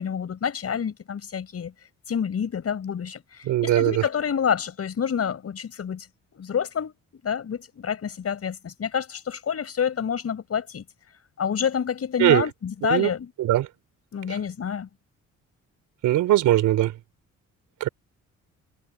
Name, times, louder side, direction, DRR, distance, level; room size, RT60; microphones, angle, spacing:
voice 1, 0.0-1.7 2.1-6.1 6.3-6.9 7.2-10.8 11.4-13.3 14.1-14.9, left 7 dB, 50° left, 5.7 m, -28 dB
voice 2, 3.5-3.9 12.2-12.4 12.8-13.1 13.4-13.7 16.0-16.9 17.8-17.9, right 14 dB, 85° right, 3.8 m, -20 dB
cardioid pair, 90°, 30 cm